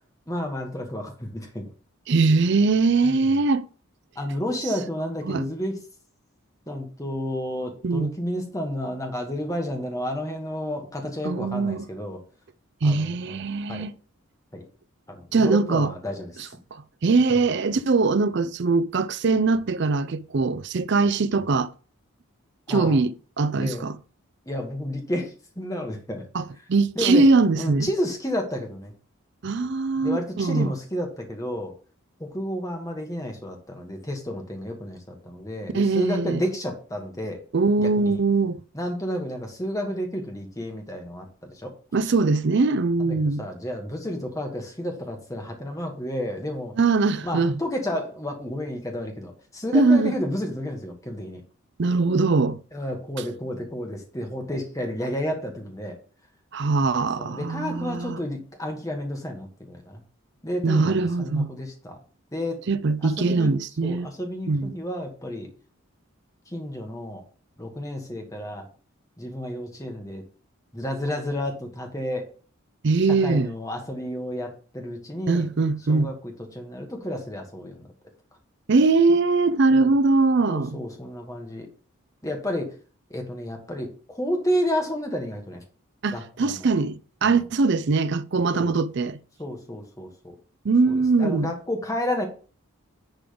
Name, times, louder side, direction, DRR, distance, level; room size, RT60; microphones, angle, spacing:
voice 1, 0.3-1.7 3.0-3.4 4.1-5.8 6.7-12.2 12.8-13.4 13.7-13.9 14.5-14.6 15.1-16.5 17.3-17.4 22.7-23.0 23.5-23.8 24.5-26.2 26.9-27.2 27.5-28.9 30.0-31.7 32.2-37.4 37.8-38.2 38.7-41.7 43.0-46.7 47.2-51.4 52.4-56.0 57.2-60.0 60.4-62.0 62.3-62.6 63.0-63.5 63.8-65.5 66.5-67.2 67.6-68.7 69.2-70.2 70.7-72.3 73.1-75.5 75.9-77.9 79.7-79.9 80.5-81.7 82.2-82.7 83.1-85.6 86.1-86.7 87.2-87.4 88.5-88.7 89.4-90.4 90.9-92.3, equal, 15° left, 1.5 m, -31 dB
voice 2, 2.1-3.6 5.3-5.4 7.8-8.1 11.2-11.9 12.8-13.9 15.3-15.9 16.7-21.7 22.7-24.0 26.3-27.9 29.4-30.7 35.7-36.4 37.5-38.6 41.9-43.4 46.8-47.5 49.7-50.1 51.8-52.6 56.5-58.2 60.6-61.5 62.7-64.1 64.5-64.7 72.8-73.5 75.3-76.1 78.7-80.8 86.0-89.2 90.6-91.5, right 3 dB, 50° right, 0.5 m, -21 dB
10.5 x 3.8 x 5.1 m
head